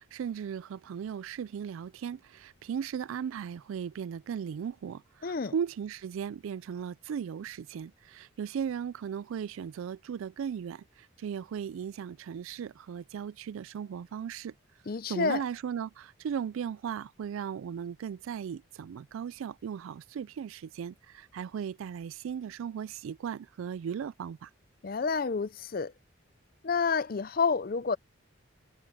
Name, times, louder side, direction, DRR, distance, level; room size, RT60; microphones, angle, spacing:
voice 1, 0.0-14.5 15.1-24.5, right 7 dB, 75° right, 0.3 m, -37 dB
voice 2, 5.2-5.5 14.9-15.4 24.8-25.9 26.6-28.0, left 5 dB, 45° left, 0.5 m, -29 dB
head